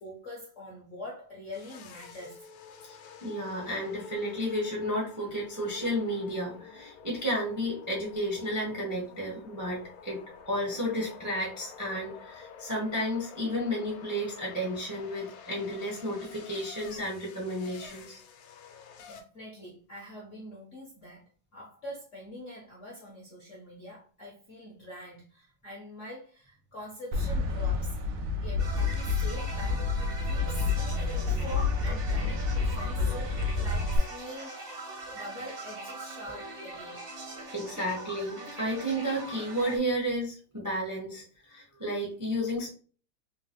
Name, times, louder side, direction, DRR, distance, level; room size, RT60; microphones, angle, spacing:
voice 1, 0.0-2.5 19.0-37.1, left 1 dB, 60° left, 0.8 m, -44 dB
sound 1, 1.5-19.2, left 6 dB, 85° left, 1.5 m, -49 dB
voice 2, 3.2-10.2 10.5-18.2 37.5-42.7, equal, 20° right, 0.4 m, -32 dB
sound 2, 27.1-34.0, left 4 dB, 75° right, 1.0 m, -29 dB
sound 3, 28.6-39.8, right 2 dB, 45° right, 0.7 m, -42 dB
3.8 x 2.4 x 2.9 m
omnidirectional pair, 2.3 m